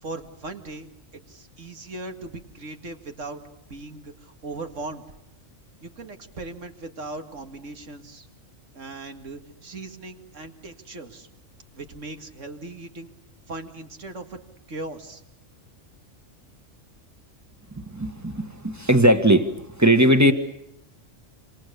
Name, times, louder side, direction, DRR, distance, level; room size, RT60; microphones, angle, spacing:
voice 1, 0.0-3.4 3.7-5.0 5.8-8.3 8.7-11.3 11.7-13.1 13.5-14.4 14.7-15.2, right 2 dB, 70° right, 6 dB, 2.4 m, -38 dB
voice 2, 17.7-20.3, right 1 dB, 15° right, 8 dB, 1.6 m, -19 dB
27.5 x 27.0 x 6.9 m, 0.82 s
omnidirectional pair, 1.3 m